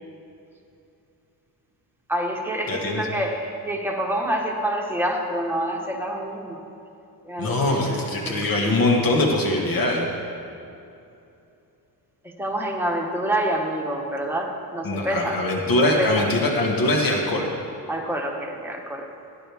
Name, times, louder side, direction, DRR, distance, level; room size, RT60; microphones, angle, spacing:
voice 1, 2.1-6.6 7.2-8.3 12.4-15.4 15.8-16.2 17.9-19.0, right 1 dB, 5° right, -1 dB, 1.2 m, -27 dB
voice 2, 2.7-3.1 7.4-10.1 14.8-17.5, left 1 dB, 55° left, 0 dB, 1.6 m, -22 dB
17.0 x 10.0 x 3.5 m, 2.7 s
cardioid pair, 140°, 41 cm